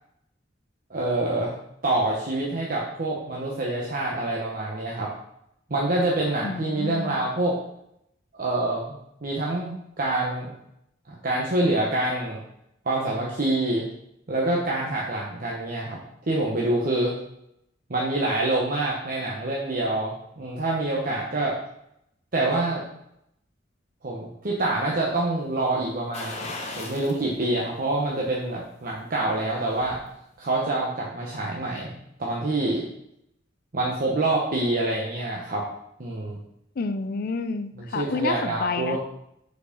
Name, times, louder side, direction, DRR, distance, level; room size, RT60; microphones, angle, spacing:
voice 1, 0.9-1.5 1.8-5.1 5.7-7.6 8.3-10.5 11.1-12.4 12.8-13.9 14.3-16.0 16.3-17.2 17.9-21.6 22.3-22.8 24.0-26.5 26.8-30.0 30.4-31.9 32.2-32.9 33.7-35.7 36.0-36.4 37.8-39.0, right 2 dB, 50° right, -3 dB, 0.9 m, -26 dB
voice 2, 6.4-7.2 36.8-39.0, left 4 dB, 55° left, 11 dB, 0.4 m, -29 dB
sound 1, 26.1-27.2 27.6-27.7 29.2-30.0 30.4-30.5, left 2 dB, 35° left, 1.0 m, -37 dB
4.9 x 4.6 x 5.2 m, 0.78 s
head